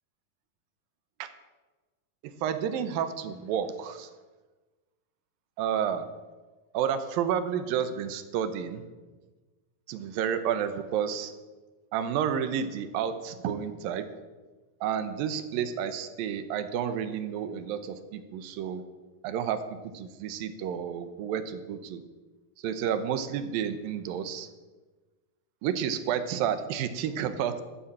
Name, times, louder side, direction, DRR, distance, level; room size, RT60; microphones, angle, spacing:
voice 1, 2.2-4.1 5.6-6.1 6.7-8.8 9.9-11.3 11.9-14.1 14.8-18.8 19.2-22.0 22.6-24.5 25.6-27.6, right 8 dB, 85° right, 11 dB, 2.8 m, -30 dB
12.5 x 8.6 x 8.5 m, 1.3 s
omnidirectional pair, 4.0 m